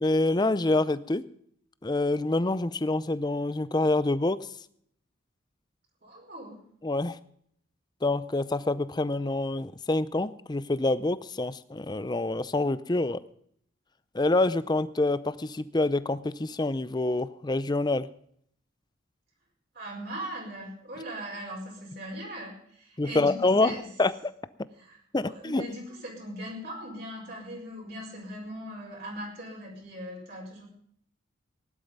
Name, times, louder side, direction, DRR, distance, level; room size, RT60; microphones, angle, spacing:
voice 1, 0.0-1.2 1.8-4.5 6.8-7.2 8.0-13.2 14.1-18.1 23.0-24.1 25.1-25.6, left 2 dB, 20° left, 15 dB, 0.5 m, -26 dB
voice 2, 6.0-6.6 19.7-23.9 24.8-30.7, equal, 50° right, -1 dB, 5.1 m, -40 dB
17.0 x 11.5 x 5.3 m, 0.67 s
head